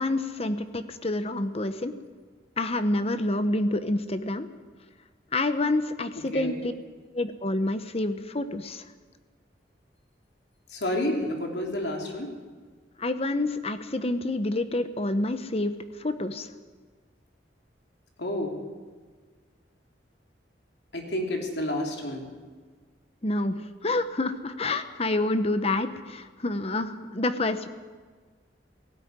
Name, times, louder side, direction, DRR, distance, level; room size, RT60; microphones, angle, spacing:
voice 1, 0.0-1.9 2.6-4.5 5.3-6.7 7.1-8.8 13.0-15.7 16.0-16.5 23.2-27.7, left 2 dB, 35° left, 10 dB, 1.0 m, -28 dB
voice 2, 10.7-12.3 18.2-18.6 20.9-22.3, left 1 dB, 70° left, 1 dB, 3.6 m, -30 dB
18.0 x 17.0 x 9.7 m, 1.5 s
head